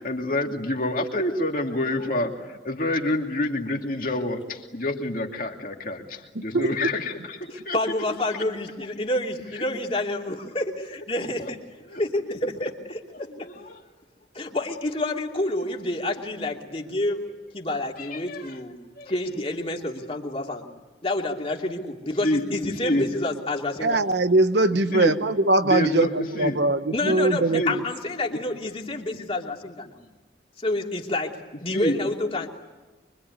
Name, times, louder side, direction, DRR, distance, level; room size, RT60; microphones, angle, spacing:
voice 1, 0.0-7.8 8.3-8.4 9.6-9.7 11.4-11.5 11.9-12.0 13.3-13.8 18.0-18.5 19.0-19.1 22.2-22.5 22.8-23.1 24.9-25.2 25.6-26.6 27.5-27.7 28.3-28.4 31.7-32.0 32.4-32.5, left 1 dB, 50° left, 2 dB, 2.7 m, -28 dB
voice 2, 6.3-6.7 23.8-27.8, right 2 dB, 70° right, 10 dB, 1.1 m, -22 dB
voice 3, 7.5-11.6 12.0-13.3 14.3-17.2 17.5-18.8 19.1-20.7 21.0-24.0 26.9-30.0 30.6-32.5, left 1 dB, 30° left, 1 dB, 2.8 m, -28 dB
25.0 x 24.5 x 9.6 m, 1.2 s
head